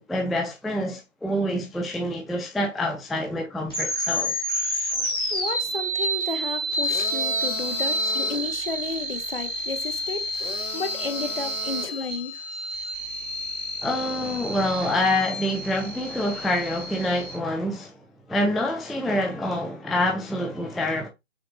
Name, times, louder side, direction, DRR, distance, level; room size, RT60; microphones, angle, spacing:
voice 1, 0.0-4.3 13.8-18.0 18.3-21.1, left 1 dB, ahead, 0.3 m, -26 dB
sound 1, 3.7-17.4, right 1 dB, 20° left, 0.9 m, -29 dB
voice 2, 5.3-10.3 10.7-12.4, left 4 dB, 50° left, 0.7 m, -32 dB
sound 2, 6.8-8.5 10.3-12.1, left 3 dB, 70° left, 1.8 m, -35 dB
5.7 x 3.0 x 2.3 m
hypercardioid pair, 180°, 38 cm